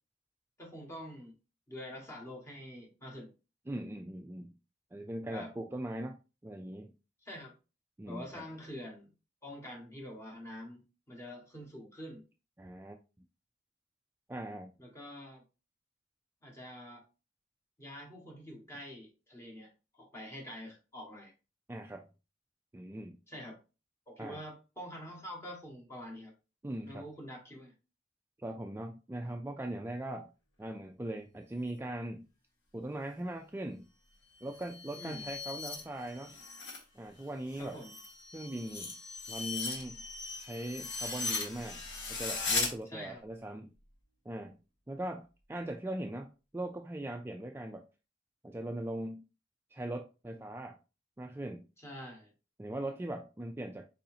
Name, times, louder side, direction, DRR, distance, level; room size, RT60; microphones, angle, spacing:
voice 1, 0.6-1.3 1.7-3.3 5.3-5.5 7.2-7.5 8.1-9.1 9.4-10.8 11.1-12.2 14.8-15.4 16.4-17.0 17.8-21.3 23.3-23.6 24.1-26.3 26.8-27.7 34.9-35.3 37.6-37.9 42.8-43.2 51.8-52.3, left 1 dB, 15° left, 1.6 m, -46 dB
voice 2, 3.7-4.5 4.9-6.9 8.0-8.5 12.6-13.0 14.3-14.7 21.7-22.1 22.7-23.2 24.2-24.4 26.6-27.0 28.4-30.3 30.6-32.3 32.7-33.9 34.4-36.3 36.9-37.8 38.3-38.9 39.3-40.0 40.4-41.8 42.1-43.7 44.3-44.6 44.9-47.9 48.4-49.3 49.7-50.8 51.2-51.7 52.6-53.9, right 1 dB, 15° right, 0.3 m, -40 dB
sound 1, 34.4-36.8 37.2-42.7, left 4 dB, 90° left, 1.7 m, -38 dB
4.8 x 4.1 x 2.7 m
head